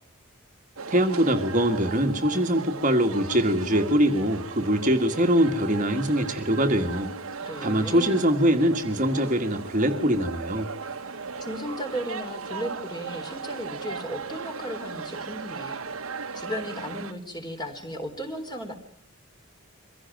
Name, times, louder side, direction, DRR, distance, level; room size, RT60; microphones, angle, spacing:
sound 1, 0.8-17.1, right 5 dB, 85° right, 1.5 m, -37 dB
voice 1, 0.9-7.1 7.6-10.7, equal, 35° right, 5 dB, 1.7 m, -23 dB
voice 2, 7.4-8.3 11.0-15.8 16.3-18.7, equal, 20° left, 5 dB, 3.6 m, -35 dB
24.0 x 16.0 x 9.0 m, 0.63 s
head